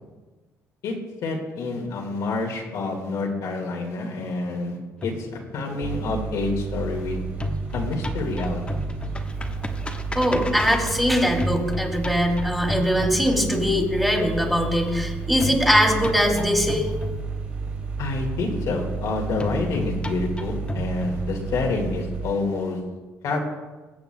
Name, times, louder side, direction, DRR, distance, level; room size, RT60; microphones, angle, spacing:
voice 1, 1.2-5.3 5.5-7.2 7.7-8.8 18.0-22.8 23.2-23.4, left 3 dB, 70° left, 0 dB, 1.8 m, -28 dB
sound 1, 5.0-7.0 7.3-13.7 15.4-17.7 19.4-21.7, left 2 dB, 20° left, 1.1 m, -33 dB
sound 2, 5.8-22.3, right 5 dB, 30° right, 3.3 m, -31 dB
voice 2, 10.1-16.9, equal, ahead, 1 dB, 2.4 m, -21 dB
21.5 x 8.0 x 2.2 m, 1.3 s
cardioid pair, 85°, 6 cm